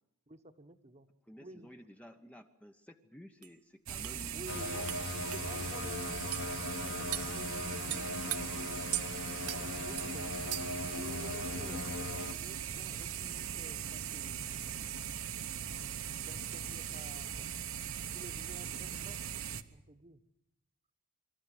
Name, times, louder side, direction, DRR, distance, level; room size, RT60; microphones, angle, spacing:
voice 1, 0.3-1.1 1.4-1.7 4.3-4.9 5.3-9.2 9.4-10.4 10.9-14.9 16.2-17.5 18.1-19.2 19.7-20.2, right 2 dB, 30° right, 9 dB, 1.2 m, -52 dB
voice 2, 1.3-4.5 4.7-5.0 11.5-11.7 17.4-17.5, equal, 5° left, 6 dB, 0.8 m, -53 dB
sound 1, 3.4-3.5 4.0-4.2 4.9-5.0 5.3-5.4 6.3-6.5 7.1-7.3 7.9-8.4 8.9-9.1 9.5-9.6 10.0-10.1 10.5-10.8, right 15 dB, 85° right, 0.9 m, -37 dB
sound 2, 3.9-19.6, right 8 dB, 65° right, 1.1 m, -40 dB
sound 3, 4.5-12.3, left 3 dB, 55° left, 0.8 m, -40 dB
26.0 x 13.5 x 9.3 m, 0.90 s
head